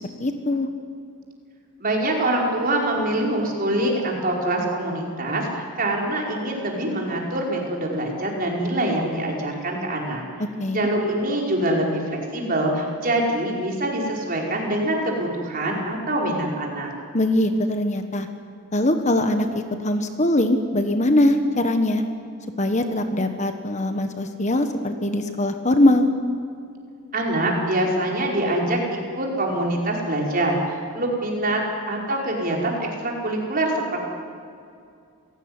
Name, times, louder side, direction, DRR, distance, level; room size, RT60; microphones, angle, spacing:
voice 1, 0.2-0.7 10.6-10.9 17.1-18.3 18.7-19.5 19.8-22.0 22.6-26.1, left 1 dB, 35° left, 7 dB, 1.5 m, -21 dB
voice 2, 1.8-10.2 10.7-16.9 27.1-34.0, right 1 dB, 40° right, -1 dB, 5.3 m, -24 dB
27.5 x 17.5 x 9.8 m, 2.4 s
head